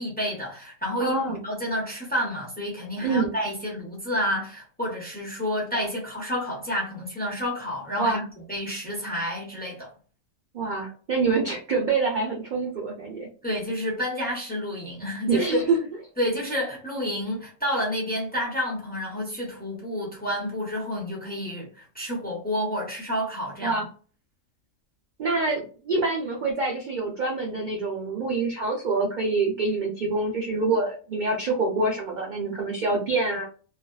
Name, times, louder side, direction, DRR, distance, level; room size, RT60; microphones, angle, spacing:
voice 1, 0.0-1.2 1.4-8.2 8.5-9.9 13.4-15.7 16.2-23.8, equal, 10° left, 0.7 m, -29 dB
voice 2, 1.0-1.4 3.0-3.3 8.0-8.2 10.5-13.3 15.3-15.8 23.6-23.9 25.2-33.4, right 3 dB, 55° right, 0.5 m, -26 dB
2.5 x 2.3 x 2.2 m
omnidirectional pair, 1.4 m